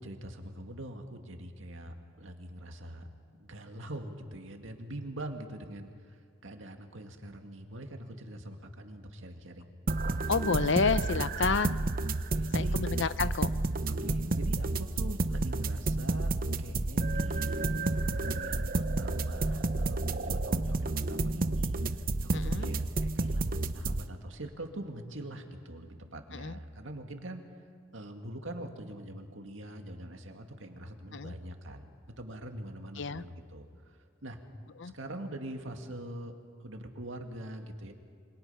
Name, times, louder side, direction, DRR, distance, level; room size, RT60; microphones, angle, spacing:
voice 1, 0.0-3.1 3.4-9.7 12.3-12.8 13.8-16.3 16.6-21.8 22.2-27.4 27.9-31.9 32.2-34.0 34.2-34.4 34.9-36.3 36.6-37.9, right 1 dB, 75° right, 4 dB, 2.1 m, -43 dB
sound 1, 9.9-24.0, right 2 dB, 45° right, 0.8 m, -30 dB
voice 2, 10.3-11.8 12.5-13.5 22.3-22.7 26.3-26.5 31.1-31.3 33.0-33.2 34.8-34.9, left 4 dB, 65° left, 14 dB, 0.7 m, -30 dB
27.5 x 25.0 x 5.7 m, 2.1 s
head